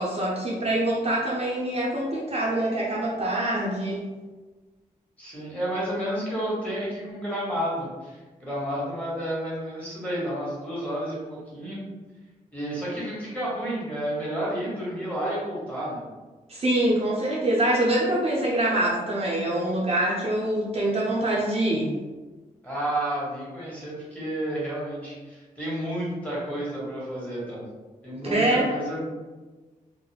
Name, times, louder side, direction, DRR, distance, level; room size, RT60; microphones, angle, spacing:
voice 1, 0.0-4.0 16.5-21.9 28.3-28.7, right 1 dB, 45° right, -5 dB, 0.6 m, -25 dB
voice 2, 5.2-11.8 12.5-16.0 22.6-27.6 28.0-29.0, right 1 dB, 10° left, -7 dB, 1.3 m, -31 dB
2.3 x 2.0 x 3.2 m, 1.3 s
cardioid pair, 65°, 14 cm